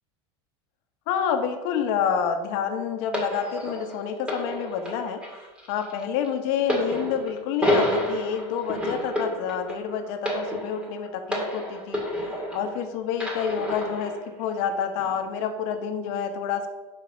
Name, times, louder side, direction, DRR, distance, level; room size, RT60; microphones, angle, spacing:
voice 1, 1.1-5.2 5.7-12.0 12.5-14.1 14.4-16.7, left 7 dB, 55° left, 6 dB, 1.2 m, -28 dB
sound 1, 3.1-12.8 13.2-14.2 15.0-15.1, left 1 dB, 5° right, 1.9 m, -29 dB
8.8 x 5.7 x 5.2 m, 1.2 s
supercardioid pair, 150°, 14 cm